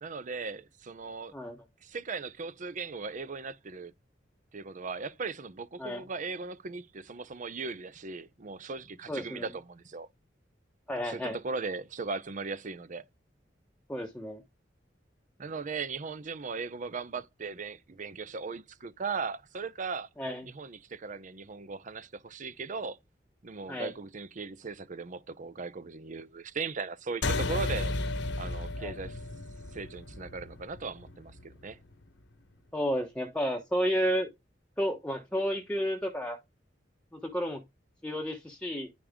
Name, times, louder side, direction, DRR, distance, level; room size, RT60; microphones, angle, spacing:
voice 1, 0.0-1.3 1.8-3.9 4.5-10.1 11.0-13.0 15.4-20.1 20.4-23.0 23.4-27.9 28.4-29.2 29.7-31.8, right 4 dB, 45° right, 0.6 m, -38 dB
voice 2, 9.1-9.5 10.9-11.4 13.9-14.4 20.2-20.5 23.7-23.9 28.8-28.9 32.7-34.3 34.8-36.4 37.1-37.6 38.0-38.9, equal, 5° left, 0.9 m, -31 dB
sound 1, 27.2-32.0, left 2 dB, 75° left, 1.3 m, -34 dB
9.9 x 5.2 x 3.6 m
head